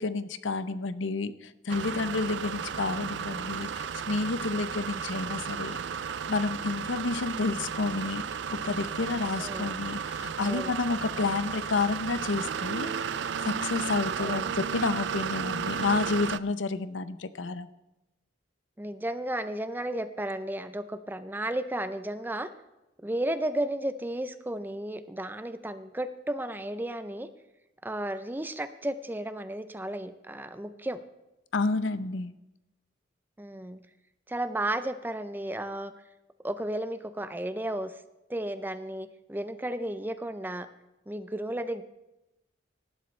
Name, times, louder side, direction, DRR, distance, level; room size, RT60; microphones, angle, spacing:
voice 1, 0.0-5.8 6.3-12.9 13.4-17.7 31.5-32.3, left 3 dB, 80° left, 14 dB, 0.7 m, -30 dB
sound 1, 1.7-16.4, right 7 dB, 65° right, 0.4 m, -34 dB
voice 2, 9.4-9.7 10.4-10.7 14.2-14.5 18.8-22.5 23.0-27.3 27.8-31.0 33.4-33.8 34.3-35.9 36.4-37.9 38.3-40.7 41.1-41.8, right 1 dB, 10° right, 11 dB, 0.5 m, -33 dB
18.0 x 11.5 x 3.3 m, 0.96 s
head